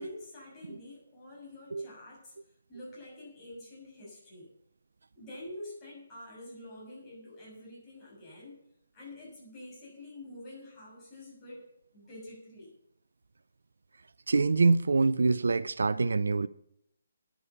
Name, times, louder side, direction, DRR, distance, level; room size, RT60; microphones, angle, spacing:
voice 1, 0.0-2.3 2.7-4.5 5.1-8.6 8.9-11.7 11.9-12.7, left 1 dB, 20° left, 6.7 m, -47 dB
voice 2, 14.3-16.5, right 3 dB, 65° right, 0.5 m, -25 dB
11.0 x 10.0 x 7.0 m
figure-of-eight pair, 145°, 0 cm